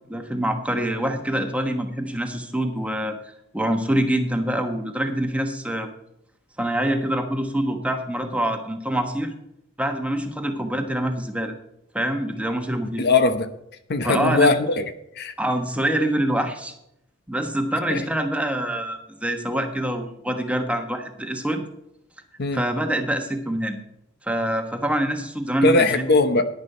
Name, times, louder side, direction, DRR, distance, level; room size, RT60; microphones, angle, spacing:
voice 1, 0.1-3.2 3.5-5.9 6.6-9.3 9.8-11.5 11.9-13.0 14.0-14.5 15.4-16.8 17.3-21.6 22.5-23.8 24.2-26.1, right 1 dB, 5° right, 1.2 m, -25 dB
voice 2, 13.0-13.5 13.9-14.8 15.2-15.3 17.9-18.0 22.4-22.6 25.6-26.4, left 3 dB, 50° left, 0.9 m, -19 dB
10.5 x 10.5 x 4.4 m
head